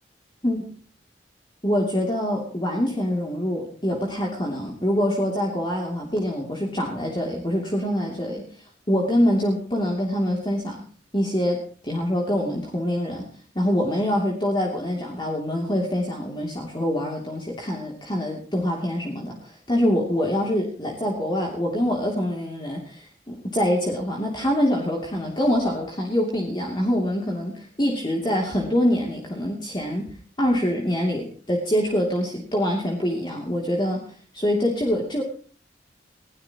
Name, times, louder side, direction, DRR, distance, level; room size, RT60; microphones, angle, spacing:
voice 1, 1.6-10.8 11.1-13.3 13.5-30.1 30.4-34.0 34.3-35.2, equal, 25° left, 0 dB, 2.8 m, -25 dB
21.0 x 16.5 x 3.0 m, 0.43 s
head